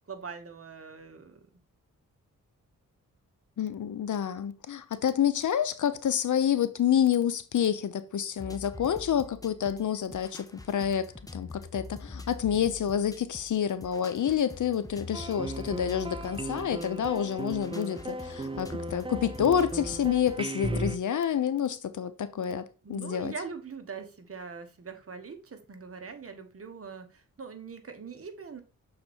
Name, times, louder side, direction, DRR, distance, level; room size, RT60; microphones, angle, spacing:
voice 1, 0.1-1.4 22.8-28.6, right 5 dB, 45° right, 1.3 m, -42 dB
voice 2, 3.6-23.3, left 9 dB, 65° left, 0.8 m, -28 dB
sound 1, 8.4-20.4, left 3 dB, 10° left, 1.0 m, -45 dB
sound 2, 15.1-21.0, right 2 dB, 15° right, 0.5 m, -36 dB
6.4 x 4.3 x 4.3 m
cardioid pair, 75°, 32 cm